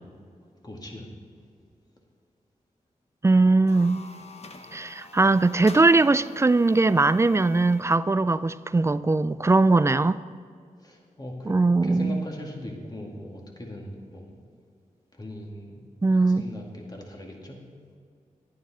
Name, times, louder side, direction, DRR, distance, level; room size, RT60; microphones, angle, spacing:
voice 1, 0.6-1.1 10.8-14.3 15.1-15.9 16.2-17.6, left 1 dB, 30° left, 0 dB, 2.2 m, -40 dB
voice 2, 3.2-4.0 4.7-10.2 11.5-12.2 16.0-16.5, right 3 dB, 20° right, 15 dB, 0.3 m, -20 dB
sound 1, 3.5-7.9, left 3 dB, 45° left, 0.9 m, -46 dB
11.5 x 9.3 x 4.3 m, 2.2 s
cardioid pair, 65°, 15 cm